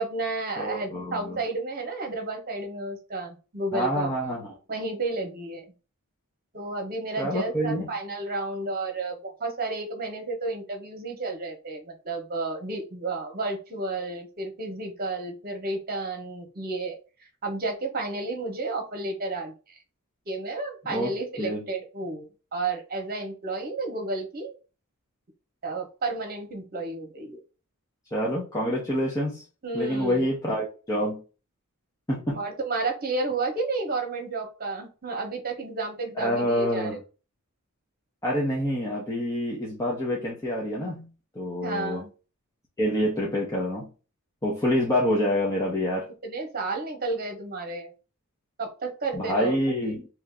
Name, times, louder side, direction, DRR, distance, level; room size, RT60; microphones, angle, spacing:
voice 1, 0.0-4.4 4.7-5.6 6.5-17.0 17.4-19.8 20.3-24.5 25.6-27.4 29.6-30.3 32.4-36.9 41.6-42.1 46.2-47.9 48.6-49.6 49.8-49.9, right 3 dB, 45° right, 1.1 m, -32 dB
voice 2, 0.6-1.4 3.7-4.5 7.2-7.9 20.9-21.6 28.1-29.4 29.7-31.2 32.1-32.4 36.1-37.0 38.2-41.1 41.3-42.0 42.8-43.9 44.4-46.1 49.1-50.1, equal, 15° left, 1.0 m, -27 dB
3.0 x 2.8 x 3.6 m
head